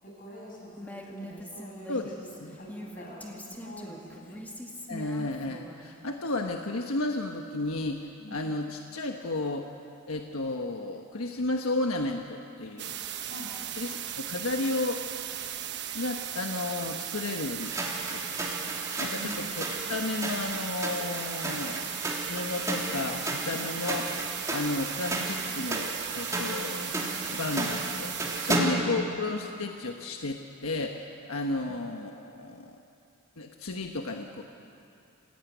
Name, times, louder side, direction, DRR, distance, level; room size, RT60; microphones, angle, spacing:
voice 1, 0.0-1.9 2.2-4.4 8.2-8.3 13.3-13.5 19.2-19.3 23.5-23.6, equal, 40° left, -2 dB, 7.0 m, -45 dB
Female speech woman speaking, 0.8-5.9, equal, 10° left, 2.1 m, -43 dB
voice 2, 4.9-9.7 10.1-13.0 13.8-15.0 15.9-17.8 18.1-18.5 19.0-19.6 19.9-21.9 22.3-24.1 24.5-25.9 26.1-27.0 27.3-32.8 33.4-34.4, left 2 dB, 85° left, 3 dB, 1.3 m, -33 dB
sound 1, 12.8-28.6, right 10 dB, 55° right, 1.1 m, -37 dB
sound 2, 17.6-28.9, right 1 dB, 15° right, 3.2 m, -33 dB
27.0 x 16.0 x 9.3 m, 2.6 s
head